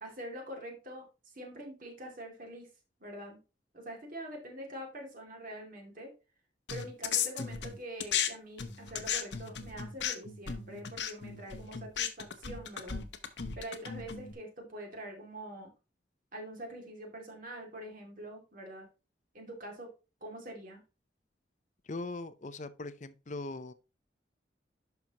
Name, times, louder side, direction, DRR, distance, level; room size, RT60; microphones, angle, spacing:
voice 1, 0.0-2.7 3.0-3.4 3.7-6.1 6.7-13.1 13.6-15.7 16.3-18.9 19.3-19.9 20.2-20.8, right 1 dB, 50° right, 2.4 m, -45 dB
sound 1, 6.7-8.3 8.6-14.3, left 8 dB, 80° left, 0.9 m, -35 dB
voice 2, 21.9-23.7, left 2 dB, 40° left, 0.6 m, -40 dB
11.0 x 5.9 x 2.9 m
head